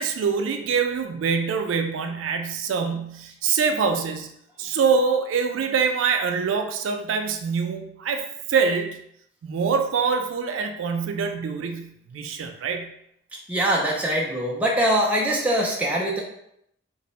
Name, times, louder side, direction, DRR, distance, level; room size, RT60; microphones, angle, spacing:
voice 1, 0.0-4.3 4.6-9.0 9.4-12.9, right 5 dB, 85° right, 5 dB, 0.3 m, -25 dB
voice 2, 13.5-16.2, right 1 dB, 5° right, -3 dB, 0.4 m, -23 dB
2.6 x 2.0 x 2.9 m, 0.75 s
head